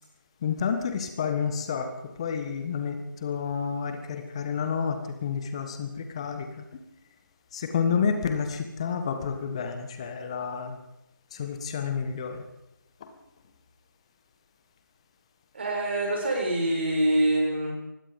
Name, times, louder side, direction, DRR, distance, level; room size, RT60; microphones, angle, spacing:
voice 1, 0.4-6.8 7.5-10.8 11.3-12.4 13.0-13.1, left 6 dB, 15° left, 7 dB, 1.5 m, -30 dB
voice 2, 15.5-17.7, right 1 dB, 30° right, 0 dB, 6.8 m, -25 dB
24.5 x 20.5 x 5.3 m, 0.89 s
figure-of-eight pair, 160°, 11 cm